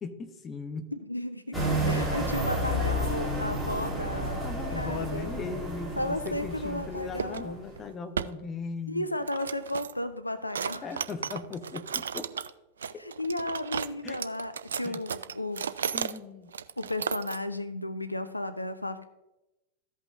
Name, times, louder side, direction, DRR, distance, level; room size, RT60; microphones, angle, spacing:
voice 1, 0.0-0.9 1.8-2.0 4.4-9.1 10.8-12.3 12.9-13.0 14.0-14.2 14.8-15.0 15.9-16.6, left 4 dB, 25° left, 7 dB, 0.9 m, -38 dB
voice 2, 0.9-4.5 4.7-5.4 6.0-7.6 8.9-11.1 13.0-15.7 16.8-19.1, left 1 dB, 85° left, 11 dB, 0.4 m, -34 dB
sound 1, 1.5-7.8, equal, ahead, 2.6 m, -31 dB
sound 2, 6.2-6.6 7.2-7.4 7.8-7.9 8.1-8.3 9.1-10.0 10.5-12.5 12.8-16.2 16.5-17.4, right 7 dB, 70° right, 0.3 m, -34 dB
14.5 x 5.5 x 2.4 m, 0.95 s
figure-of-eight pair, 90°, 0 cm